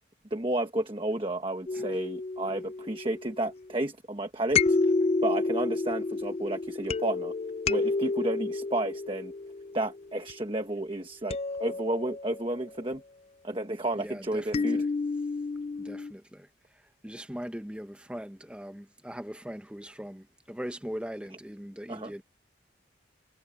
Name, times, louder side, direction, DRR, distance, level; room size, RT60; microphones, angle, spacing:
voice 1, 0.3-4.8 5.2-7.3 7.7-9.3 9.7-13.0 13.4-14.8 21.9-22.1, right 1 dB, 25° right, 1.2 m, -31 dB
kalimba mgreel, 1.7-3.6 4.5-10.3 11.3-12.7 14.5-16.1, left 3 dB, 30° left, 0.3 m, -30 dB
voice 2, 13.9-14.9 15.8-16.5 16.7-22.2, equal, 5° right, 0.9 m, -40 dB
head